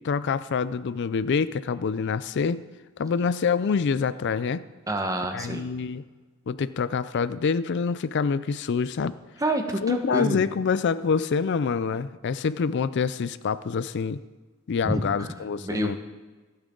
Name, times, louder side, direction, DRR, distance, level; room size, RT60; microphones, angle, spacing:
voice 1, 0.0-2.6 3.0-4.6 5.3-6.0 6.5-9.1 9.8-14.2 14.7-16.0, left 5 dB, 55° left, 15 dB, 0.4 m, -26 dB
voice 2, 4.9-5.7 9.4-10.4 14.9-16.0, right 1 dB, 15° right, 5 dB, 1.2 m, -28 dB
26.0 x 8.8 x 3.8 m, 1.3 s
head